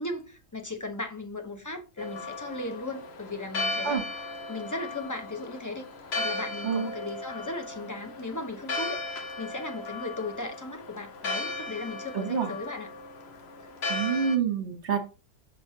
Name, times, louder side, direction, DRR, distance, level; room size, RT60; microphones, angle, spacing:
voice 1, 0.0-4.0 4.5-5.8 6.1-12.9, left 2 dB, 15° left, 0.7 m, -37 dB
Church bell, 2.0-14.4, left 2 dB, 45° left, 1.0 m, -36 dB
voice 2, 12.1-12.5 13.9-15.0, right 7 dB, 45° right, 1.4 m, -27 dB
6.7 x 3.4 x 5.5 m
omnidirectional pair, 1.7 m